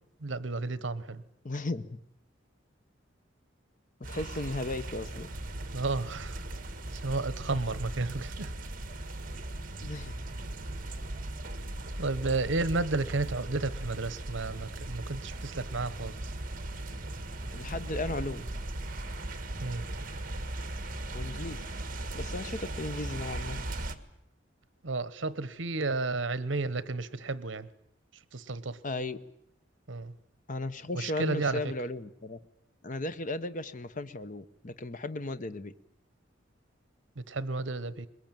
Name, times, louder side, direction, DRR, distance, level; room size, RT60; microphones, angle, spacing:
voice 1, 0.2-1.2 5.7-6.4 6.9-8.5 12.0-16.1 19.6-19.9 24.8-27.7 28.3-28.8 29.9-30.1 30.9-31.6 37.2-38.1, right 3 dB, 70° right, 1.0 m, -32 dB
voice 2, 1.4-1.9 4.1-5.3 9.8-10.2 17.5-18.5 21.1-21.6 22.1-23.6 28.8-29.2 30.5-32.4 32.8-35.7, left 2 dB, 40° left, 0.9 m, -35 dB
sound 1, 4.0-23.9, right 1 dB, 45° right, 1.7 m, -38 dB
21.5 x 21.0 x 9.1 m
head